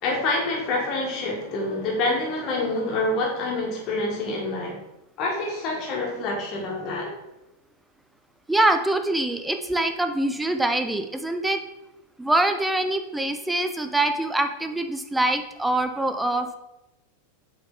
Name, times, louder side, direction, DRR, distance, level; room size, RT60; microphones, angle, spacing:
voice 1, 0.0-4.8 5.2-7.2, left 2 dB, 40° left, -2 dB, 1.6 m, -27 dB
voice 2, 8.5-11.6 12.2-16.5, right 1 dB, 5° right, 7 dB, 0.5 m, -24 dB
7.7 x 3.8 x 3.7 m, 0.92 s
figure-of-eight pair, 90°, 0 cm